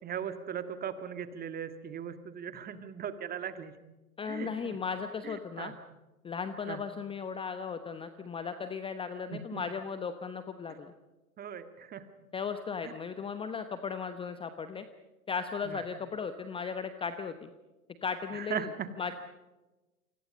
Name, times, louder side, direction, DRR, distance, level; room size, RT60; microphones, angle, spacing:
voice 1, 0.0-3.7 4.3-4.8 5.2-5.7 6.7-6.8 9.3-9.6 11.4-12.0 15.6-15.8 18.3-18.9, right 8 dB, 20° right, 10 dB, 1.9 m, -38 dB
voice 2, 4.2-5.7 6.2-10.9 12.3-14.8 15.3-17.5 18.0-18.7 19.0-19.1, left 6 dB, 10° left, 10 dB, 1.0 m, -36 dB
29.0 x 25.5 x 5.4 m, 1.1 s
figure-of-eight pair, 105°, 46 cm